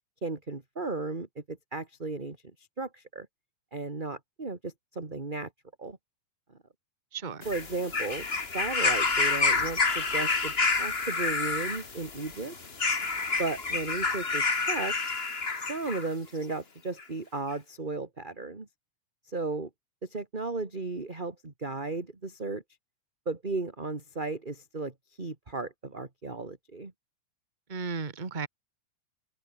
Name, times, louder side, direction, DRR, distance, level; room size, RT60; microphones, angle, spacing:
voice 1, 0.2-2.4 2.8-3.3 3.7-5.5 5.8-6.0 7.4-8.3 8.5-12.5 13.4-15.0 15.6-18.7 19.3-19.7 20.0-22.6 23.3-26.9, right 3 dB, 15° right, 2.1 m, -35 dB
voice 2, 7.1-7.5 27.7-28.5, right 4 dB, 40° right, 0.6 m, -34 dB
sound 1, 7.4-16.1 17.0-17.1, left 4 dB, 25° left, 1.6 m, -28 dB
omnidirectional pair, 3.7 m